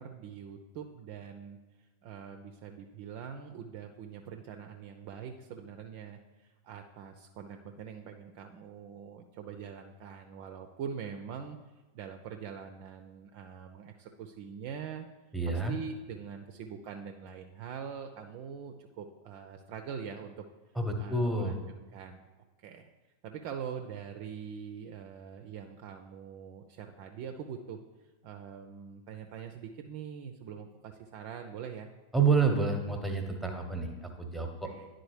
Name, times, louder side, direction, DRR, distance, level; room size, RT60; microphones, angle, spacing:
voice 1, 0.0-1.6 2.0-11.6 11.9-15.1 15.5-20.4 21.0-21.6 21.9-22.3 22.6-22.9 23.2-27.8 28.2-31.9 34.6-34.9, right 7 dB, 45° right, 6 dB, 0.4 m, -43 dB
voice 2, 15.3-15.7 20.8-21.6 32.1-34.7, right 4 dB, ahead, 3 dB, 0.9 m, -29 dB
10.5 x 3.9 x 3.2 m, 1.2 s
figure-of-eight pair, 90°, 0 cm